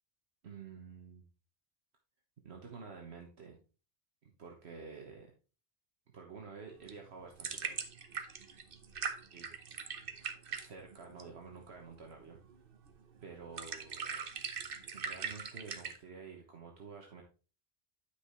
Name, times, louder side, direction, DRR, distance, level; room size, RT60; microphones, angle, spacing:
voice 1, 0.4-1.2 2.4-3.6 4.2-5.3 6.1-7.8 9.3-9.5 10.6-12.4 13.2-14.2 14.9-17.2, right 5 dB, 75° right, 1 dB, 1.5 m, -50 dB
sound 1, 6.7-16.0, right 6 dB, 60° right, 1.1 m, -42 dB
9.8 x 6.1 x 3.1 m, 0.35 s
omnidirectional pair, 1.1 m